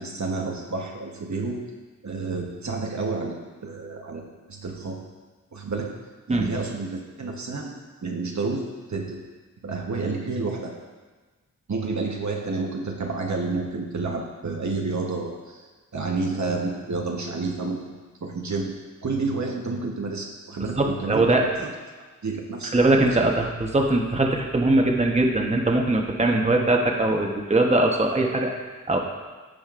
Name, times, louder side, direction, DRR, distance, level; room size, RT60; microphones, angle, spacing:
voice 1, 0.0-1.6 2.0-3.4 3.6-5.0 5.5-5.9 6.3-7.7 8.0-8.6 8.9-9.2 9.6-10.7 11.7-15.6 15.9-18.7 19.0-21.3 21.6-21.7 22.2-23.3, right 3 dB, 60° right, 0 dB, 1.1 m, -30 dB
voice 2, 20.8-21.5 22.7-29.0, right 2 dB, 20° right, 1 dB, 0.9 m, -21 dB
15.0 x 5.1 x 2.5 m, 1.3 s
wide cardioid pair, 70°, 32 cm